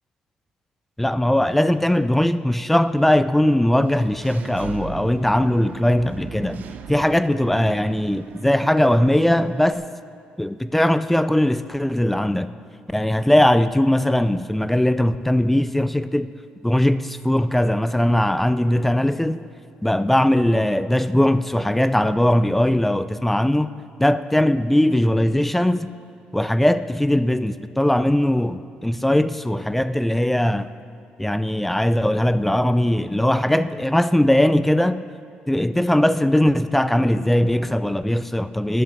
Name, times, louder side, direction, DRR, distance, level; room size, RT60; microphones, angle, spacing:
voice 1, 1.0-6.6 6.9-9.8 10.4-12.5 12.9-16.3 16.6-19.4 19.8-23.7 24.0-25.9 26.3-30.7 31.2-35.0 35.5-38.8, left 1 dB, 5° left, 14 dB, 0.3 m, -20 dB
Engine / Mechanisms, 3.8-9.7, right 8 dB, 65° right, 0.6 m, -38 dB
11.0 x 8.3 x 6.5 m, 2.2 s
cardioid pair, 110°, 3 cm